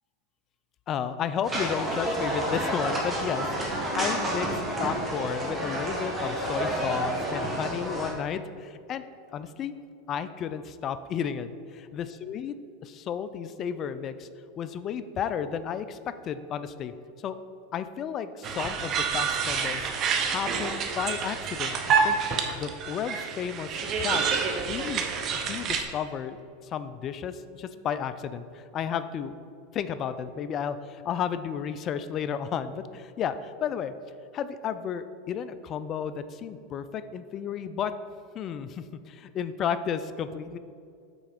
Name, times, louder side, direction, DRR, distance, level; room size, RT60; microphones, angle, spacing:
voice 1, 0.9-9.0 9.3-9.7 10.1-12.6 12.8-14.3 14.6-16.0 16.2-16.9 17.2-17.4 17.7-24.4 24.7-25.1 25.3-26.4 26.6-29.3 29.7-33.9 34.3-37.9 38.3-40.6, left 8 dB, 40° left, 13 dB, 0.4 m, -33 dB
sound 1, 1.4-8.1, right 1 dB, 15° right, 1.5 m, -30 dB
sound 2, 18.4-25.8, right 6 dB, 40° right, 0.7 m, -28 dB
6.1 x 4.1 x 5.1 m, 2.5 s
hypercardioid pair, 105°, 0 cm